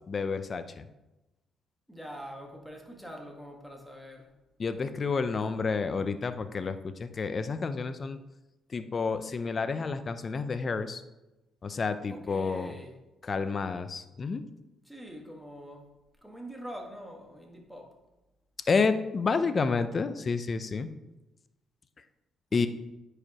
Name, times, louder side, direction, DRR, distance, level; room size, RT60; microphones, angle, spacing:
voice 1, 0.1-0.8 4.6-8.2 8.7-11.0 11.6-12.7 13.2-14.4 18.7-20.9 22.5-22.7, left 4 dB, 40° left, 11 dB, 0.5 m, -30 dB
voice 2, 1.9-4.3 12.1-13.0 14.8-15.9 16.2-17.9 22.5-22.7, equal, ahead, 1 dB, 1.5 m, -44 dB
9.4 x 4.9 x 3.0 m, 0.99 s
cardioid pair, 90°, 0 cm